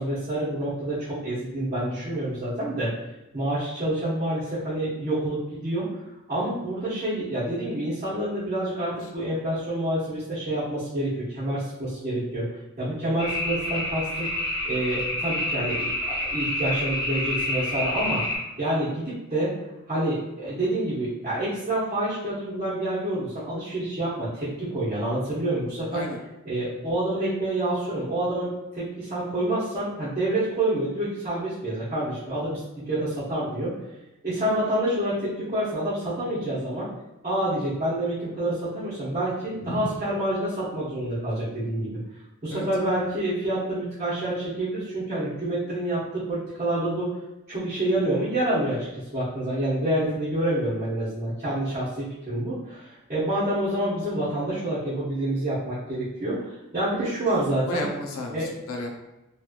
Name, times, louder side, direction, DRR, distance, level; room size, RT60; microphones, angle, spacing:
voice 1, 0.0-2.9 3.3-5.9 6.3-12.5 12.8-14.4 14.6-18.2 18.6-19.5 19.9-26.0 26.4-32.6 32.9-33.7 34.2-36.9 37.2-42.0 42.4-47.1 47.5-51.9 52.3-57.8 58.3-58.5, right 1 dB, 30° right, -12 dB, 1.0 m, -27 dB
sound 1, 13.2-18.4, left 1 dB, 25° left, 1.2 m, -28 dB
voice 2, 57.7-58.9, left 2 dB, 80° left, 1 dB, 0.6 m, -32 dB
3.2 x 3.0 x 2.4 m, 1.0 s
head